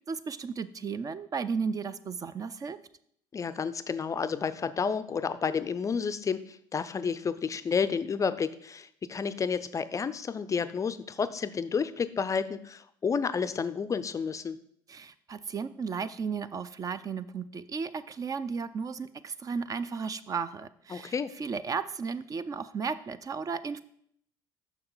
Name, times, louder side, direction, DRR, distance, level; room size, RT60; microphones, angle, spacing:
voice 1, 0.1-2.8 14.9-23.8, right 5 dB, 30° right, 14 dB, 0.4 m, -34 dB
voice 2, 3.3-14.6 20.9-21.3, left 6 dB, 30° left, 12 dB, 0.4 m, -31 dB
6.9 x 5.8 x 3.9 m, 0.67 s
supercardioid pair, 75°, 12 cm